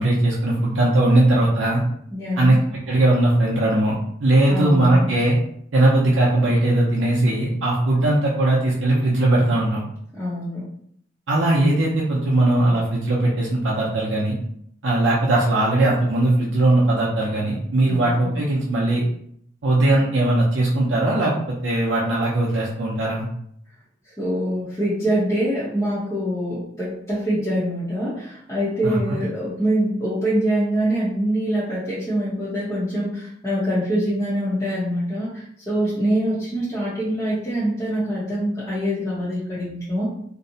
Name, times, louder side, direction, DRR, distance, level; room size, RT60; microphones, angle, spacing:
voice 1, 0.0-1.8 2.4-2.6 2.9-5.3 5.7-9.8 11.3-14.3 14.8-19.0 19.6-23.3 28.8-29.2, right 1 dB, 75° right, -4 dB, 0.5 m, -19 dB
voice 2, 2.1-2.6 4.5-5.1 10.1-10.7 17.9-18.3 24.2-40.1, right 1 dB, 15° left, -10 dB, 0.7 m, -24 dB
2.6 x 2.0 x 2.6 m, 0.68 s
head